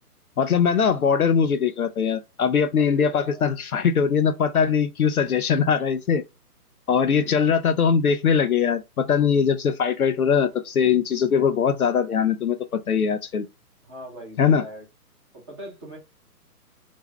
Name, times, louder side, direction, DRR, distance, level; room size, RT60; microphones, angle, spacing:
voice 1, 0.4-6.2 6.9-13.5 14.4-14.6, left 6 dB, 65° left, 0.5 m, -21 dB
voice 2, 2.8-3.4 7.1-7.4 13.8-14.9 15.3-16.0, equal, 15° right, 0.9 m, -40 dB
2.6 x 2.2 x 3.2 m
figure-of-eight pair, 135°, 47 cm